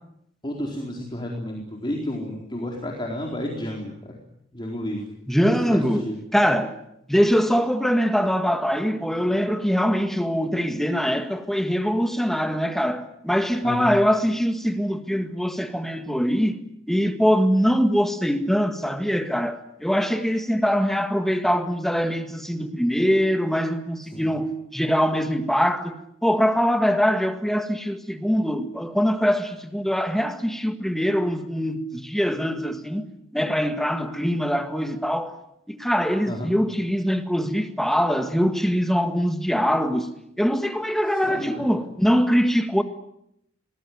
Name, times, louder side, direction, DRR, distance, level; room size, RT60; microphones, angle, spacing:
voice 1, 0.4-4.1 4.5-5.1 5.6-6.2 13.6-13.9 24.1-24.3 36.3-36.5 41.2-41.7, left 1 dB, 25° left, 4.3 m, -31 dB
voice 2, 5.3-6.1 6.3-6.8 7.1-16.6 16.9-33.0 33.3-35.4 35.7-42.8, equal, ahead, 1.8 m, -23 dB
25.0 x 20.0 x 9.5 m
head